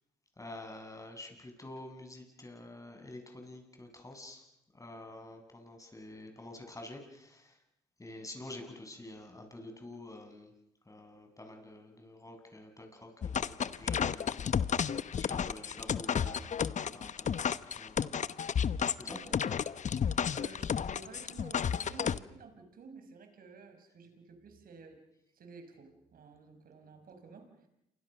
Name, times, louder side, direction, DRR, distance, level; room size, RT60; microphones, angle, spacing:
voice 1, 0.4-4.4 4.7-7.6 8.0-10.5 10.9-14.4 15.2-18.1 19.0-19.2, left 2 dB, 20° left, 4 dB, 7.7 m, -48 dB
sound 1, 13.2-22.2, left 7 dB, 45° left, 1.0 m, -32 dB
voice 2, 19.0-19.4 20.0-25.0 25.3-27.7, right 4 dB, 55° right, 6 dB, 5.9 m, -53 dB
28.5 x 24.5 x 6.5 m, 0.83 s
supercardioid pair, 60°, 17 cm